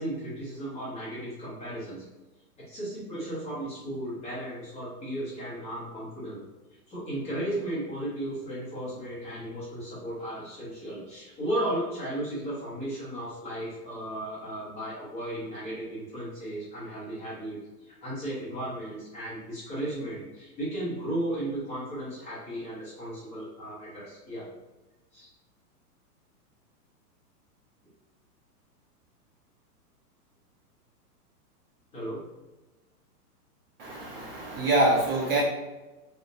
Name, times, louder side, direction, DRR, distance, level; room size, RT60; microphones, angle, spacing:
voice 1, 0.0-2.0 2.7-6.4 6.9-24.5 25.1-25.3 31.9-32.2, right 1 dB, 15° left, -8 dB, 0.5 m, -35 dB
voice 2, 33.8-35.4, right 2 dB, 40° right, -3 dB, 0.4 m, -25 dB
2.5 x 2.1 x 2.3 m, 1.1 s
hypercardioid pair, 130°, 47 cm